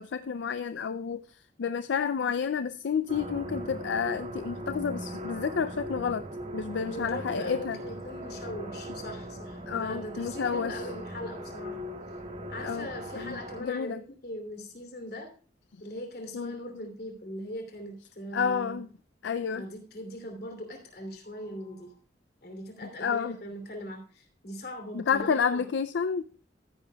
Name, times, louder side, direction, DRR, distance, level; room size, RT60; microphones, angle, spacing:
voice 1, 0.0-6.2 6.5-7.8 9.7-10.8 12.6-12.9 13.1-14.0 16.3-16.6 18.3-18.9 19.2-19.7 23.0-23.4 24.9-26.2, left 6 dB, 80° left, 0.4 m, -30 dB
sound 1, 3.1-13.6, equal, 40° right, 1.6 m, -39 dB
voice 2, 6.8-11.8 12.5-15.3 15.8-18.8 19.5-22.0 22.4-25.6, equal, 55° left, 2.8 m, -40 dB
14.5 x 10.0 x 2.3 m
head